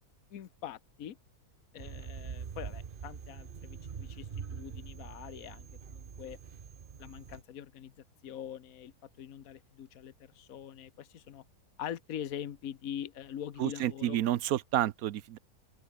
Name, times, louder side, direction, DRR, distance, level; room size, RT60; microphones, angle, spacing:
voice 1, 0.3-1.2 1.7-6.4 7.0-7.9 8.2-11.4 11.8-14.2, left 10 dB, 65° left, 1.5 m, -43 dB
sound 1, 1.8-7.4, right 7 dB, 40° right, 1.0 m, -44 dB
voice 2, 13.6-15.4, right 12 dB, 75° right, 1.2 m, -30 dB
open air
omnidirectional pair, 1.6 m